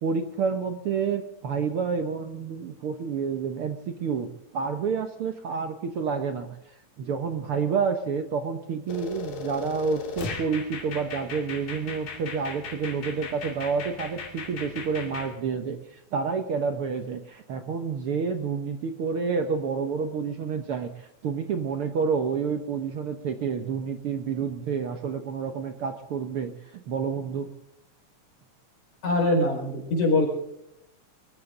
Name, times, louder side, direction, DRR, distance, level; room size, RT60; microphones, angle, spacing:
voice 1, 0.0-27.5, right 5 dB, 60° right, 7 dB, 1.6 m, -29 dB
sound 1, 8.9-15.3, left 5 dB, 80° left, 4.2 m, -37 dB
voice 2, 29.0-30.3, left 2 dB, 65° left, 1 dB, 6.3 m, -23 dB
24.5 x 15.0 x 3.8 m, 0.82 s
omnidirectional pair, 3.6 m